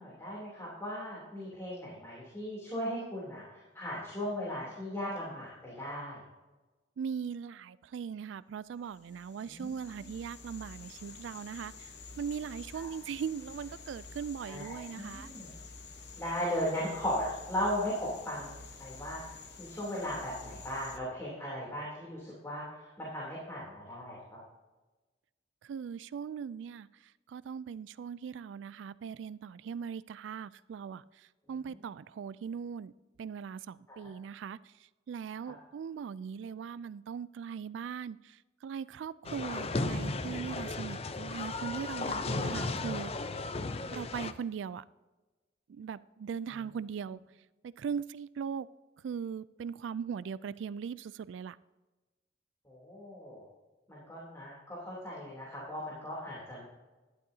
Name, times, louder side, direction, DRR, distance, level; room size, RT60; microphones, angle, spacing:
voice 1, 0.0-6.2 9.5-10.1 12.7-12.9 14.4-15.5 16.2-19.2 19.6-24.2 31.7-31.8 33.9-34.1 35.4-35.5 52.6-53.4 53.9-56.6, equal, 15° left, 3.1 m, -37 dB
voice 2, 7.0-11.9 12.2-15.3 25.6-26.9 27.3-32.9 33.2-34.6 35.1-43.1 43.9-44.8 45.7-47.2 47.8-48.7 49.0-51.6, right 7 dB, 80° right, 0.3 m, -39 dB
sound 1, 8.8-21.0, left 4 dB, 60° left, 1.0 m, -49 dB
sound 2, 39.2-44.3, left 3 dB, 30° left, 0.5 m, -35 dB
12.0 x 11.0 x 2.8 m
head